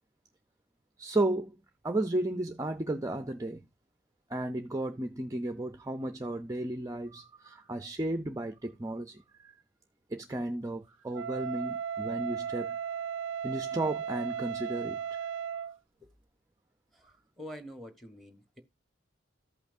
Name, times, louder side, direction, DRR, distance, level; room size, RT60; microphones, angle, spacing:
voice 1, 1.0-1.6 1.8-3.6 4.3-9.5 10.1-12.8 13.4-15.2, right 1 dB, 15° right, 0.5 m, -34 dB
Wind instrument woodwind instrument, 11.1-15.8, right 7 dB, 80° right, 0.4 m, -36 dB
voice 2, 16.9-18.6, equal, ahead, 1.2 m, -47 dB
14.0 x 5.6 x 2.6 m
head